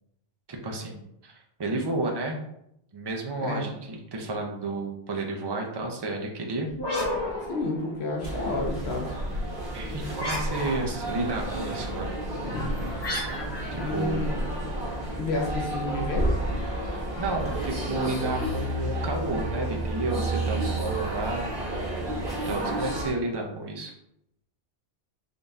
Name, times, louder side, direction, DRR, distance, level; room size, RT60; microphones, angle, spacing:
voice 1, 0.5-2.4 2.9-6.7 9.7-12.1 13.7-14.2 16.9-21.5 22.3-23.9, right 2 dB, 30° right, 1 dB, 0.5 m, -31 dB
voice 2, 3.4-3.7 7.5-9.1 12.4-12.8 13.7-14.5 15.2-16.3, left 2 dB, 90° left, 0 dB, 1.2 m, -30 dB
sound 1, 6.7-8.3 10.1-11.2 13.0-14.9, left 1 dB, 25° left, 0.9 m, -33 dB
sound 2, 8.2-23.1, right 1 dB, 60° right, 1.4 m, -31 dB
3.8 x 2.7 x 3.5 m, 0.78 s
omnidirectional pair, 1.1 m